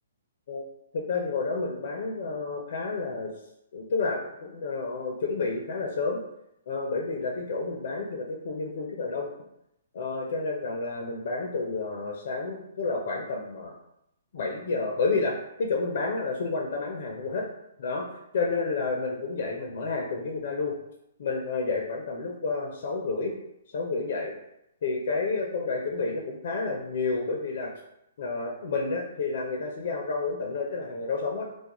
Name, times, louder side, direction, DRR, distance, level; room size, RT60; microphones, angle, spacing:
voice 1, 0.9-3.3 3.7-6.2 6.7-9.3 9.9-13.7 14.3-17.4 17.8-18.1 18.3-20.8 21.2-23.3 23.7-24.3 24.8-27.7 28.2-31.5, left 3 dB, 60° left, 0 dB, 0.4 m, -30 dB
2.3 x 2.0 x 2.9 m, 0.83 s
hypercardioid pair, 155°, 0 cm